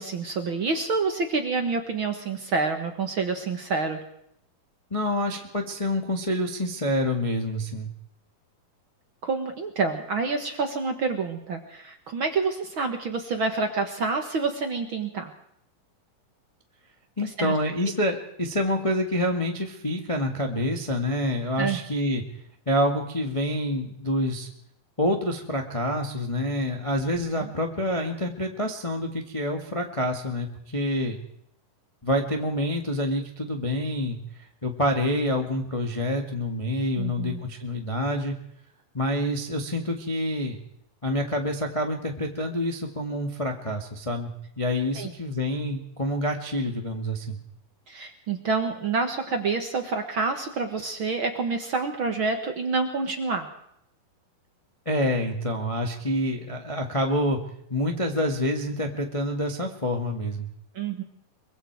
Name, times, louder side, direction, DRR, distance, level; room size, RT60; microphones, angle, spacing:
voice 1, 0.0-4.0 9.2-15.3 17.2-17.5 21.6-21.8 27.4-27.5 37.0-37.4 44.9-45.1 47.9-53.5 60.7-61.0, right 4 dB, 50° right, 5 dB, 1.6 m, -28 dB
voice 2, 4.9-7.9 17.2-22.2 22.6-24.5 25.0-31.2 32.0-38.3 38.9-40.6 41.0-44.3 44.6-47.4 54.8-57.4 57.7-60.5, left 1 dB, 30° left, 2 dB, 0.6 m, -27 dB
23.5 x 23.5 x 4.7 m, 0.72 s
omnidirectional pair, 4.1 m